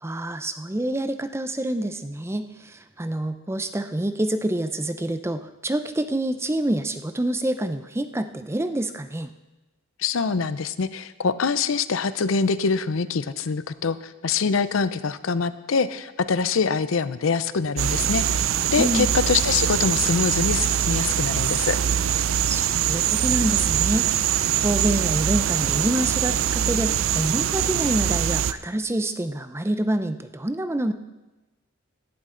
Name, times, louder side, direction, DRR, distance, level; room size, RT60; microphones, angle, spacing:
voice 1, 0.0-9.3 18.8-19.1 22.5-24.1 24.6-30.9, right 1 dB, 15° right, 10 dB, 0.5 m, -27 dB
voice 2, 10.0-21.8, left 5 dB, 85° left, 14 dB, 0.6 m, -24 dB
sound 1, 17.8-28.5, right 9 dB, 90° right, 0.5 m, -23 dB
16.5 x 11.5 x 3.8 m, 1.1 s
head